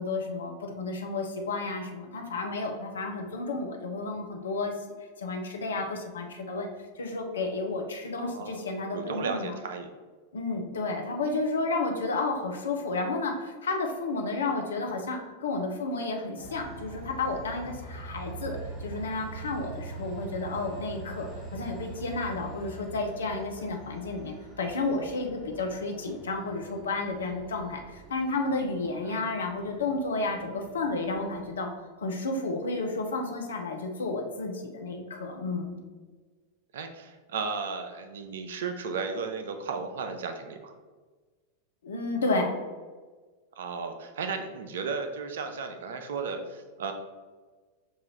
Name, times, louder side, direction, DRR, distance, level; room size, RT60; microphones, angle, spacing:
voice 1, 0.0-4.7 5.2-6.7 7.0-9.5 10.3-18.6 18.8-27.8 28.1-31.7 32.0-35.8 41.8-42.5, left 3 dB, 65° left, 3 dB, 0.6 m, -31 dB
voice 2, 8.2-8.6 8.9-9.9 29.0-29.3 36.7-40.7 43.6-46.9, right 5 dB, 60° right, 6 dB, 0.4 m, -34 dB
Train, 16.4-31.5, right 3 dB, 15° right, 1.1 m, -44 dB
5.4 x 2.4 x 3.0 m, 1.4 s
figure-of-eight pair, 90°, 0 cm